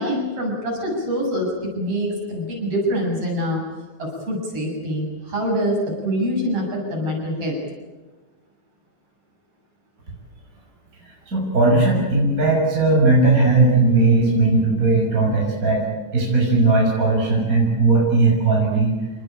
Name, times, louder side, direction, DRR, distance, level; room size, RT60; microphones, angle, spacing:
voice 1, 0.0-3.6 4.0-5.8 6.0-7.6, equal, 50° right, -1 dB, 8.9 m, -25 dB
voice 2, 11.3-15.9 16.1-18.9, right 3 dB, 25° right, -2 dB, 6.7 m, -17 dB
28.0 x 20.0 x 9.0 m, 1.2 s
omnidirectional pair, 3.4 m